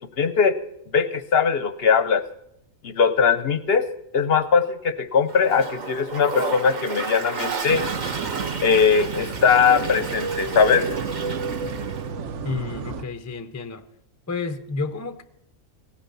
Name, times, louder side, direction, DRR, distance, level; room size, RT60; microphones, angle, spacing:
voice 1, 0.2-0.5 0.9-2.2 2.8-3.8 4.1-7.8 8.6-10.8, left 6 dB, 55° left, 14 dB, 0.8 m, -20 dB
Toilet flush, 5.3-12.1, right 4 dB, 35° right, 1.0 m, -32 dB
sound 1, 7.7-13.0, right 5 dB, 60° right, 1.1 m, -30 dB
voice 2, 12.4-13.8 14.3-15.2, left 4 dB, 25° left, 11 dB, 0.3 m, -30 dB
16.5 x 10.0 x 6.9 m, 0.77 s
omnidirectional pair, 1.4 m